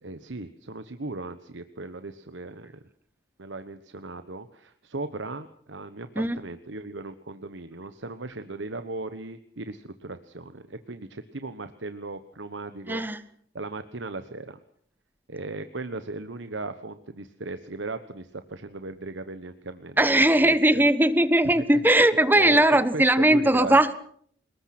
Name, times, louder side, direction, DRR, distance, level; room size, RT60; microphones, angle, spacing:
voice 1, 0.0-2.7 3.4-13.1 13.5-14.6 15.3-20.8 21.5-23.8, right 2 dB, 85° right, 10 dB, 1.2 m, -37 dB
voice 2, 12.9-13.2 20.0-23.9, right 1 dB, 10° right, 13 dB, 1.2 m, -19 dB
28.0 x 20.0 x 6.1 m, 0.62 s
head